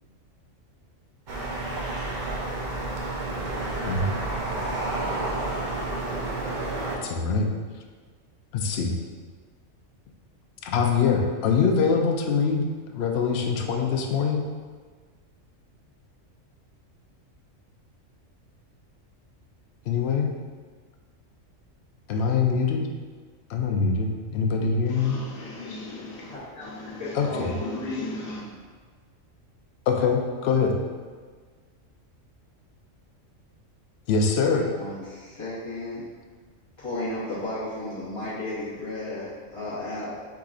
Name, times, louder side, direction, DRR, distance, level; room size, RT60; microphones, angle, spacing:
sound 1, 1.3-7.0, right 2 dB, 50° right, 0.6 m, -30 dB
voice 1, 7.0-7.5 8.5-8.9 10.6-12.7 12.9-14.4 19.9-20.3 22.1-22.9 23.5-25.2 27.1-27.5 29.9-30.8 34.1-34.7, left 5 dB, 65° left, 2 dB, 0.7 m, -23 dB
voice 2, 24.9-28.5, left 2 dB, 80° left, -3 dB, 1.2 m, -37 dB
voice 3, 26.3-26.7 27.0-28.0 34.7-36.0 36.8-40.1, left 2 dB, 25° left, -13 dB, 0.9 m, -34 dB
4.8 x 3.8 x 2.4 m, 1.5 s
omnidirectional pair, 1.4 m